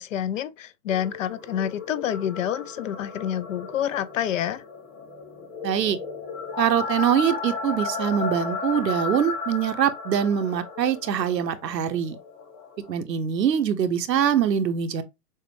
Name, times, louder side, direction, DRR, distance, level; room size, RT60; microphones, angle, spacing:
voice 1, 0.0-4.6, left 10 dB, 55° left, 0.5 m, -28 dB
sound 1, 0.9-13.0, left 4 dB, 35° left, 1.8 m, -34 dB
voice 2, 5.6-6.0 6.6-12.2 12.9-15.0, right 8 dB, 85° right, 0.9 m, -23 dB
6.4 x 2.1 x 3.2 m
hypercardioid pair, 135°, 48 cm